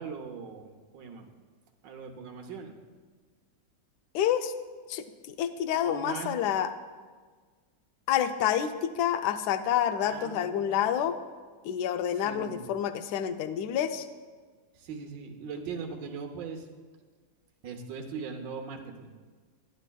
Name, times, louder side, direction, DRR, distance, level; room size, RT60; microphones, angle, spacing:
voice 1, 0.0-1.3 1.8-2.8 5.8-6.3 10.0-10.9 12.2-12.6 14.7-16.7 17.6-19.1, right 5 dB, 70° right, 4 dB, 1.4 m, -40 dB
voice 2, 4.1-4.5 4.9-6.7 8.1-11.2 11.6-14.1, left 10 dB, 70° left, 10 dB, 1.0 m, -28 dB
11.5 x 11.0 x 2.3 m, 1.5 s
omnidirectional pair, 2.1 m